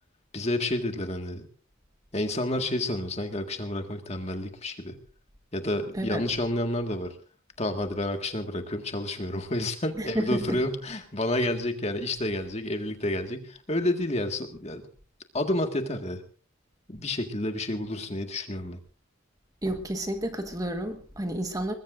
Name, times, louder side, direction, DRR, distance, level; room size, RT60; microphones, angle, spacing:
voice 1, 0.3-1.5 2.1-5.0 5.5-7.1 7.6-14.9 15.3-16.2 16.9-18.8, left 1 dB, 30° left, 5 dB, 1.8 m, -30 dB
voice 2, 5.9-6.3 10.0-10.6 19.6-21.7, right 1 dB, 15° right, 6 dB, 1.4 m, -31 dB
22.0 x 20.5 x 2.6 m, 0.38 s
head